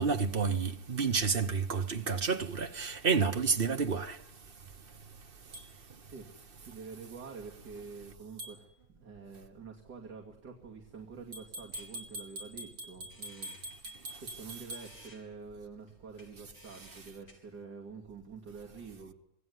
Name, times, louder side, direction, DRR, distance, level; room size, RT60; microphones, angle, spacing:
voice 1, 0.0-4.1, right 5 dB, 35° right, 1.0 m, -29 dB
sound 1, 5.5-5.7 8.4-8.6 11.3-14.9, right 1 dB, 65° right, 5.7 m, -44 dB
voice 2, 6.0-13.9 14.2-19.1, right 5 dB, 50° right, 3.0 m, -47 dB
sound 2, 10.6-17.3, left 1 dB, 45° left, 5.8 m, -60 dB
26.5 x 19.0 x 9.6 m
omnidirectional pair, 2.2 m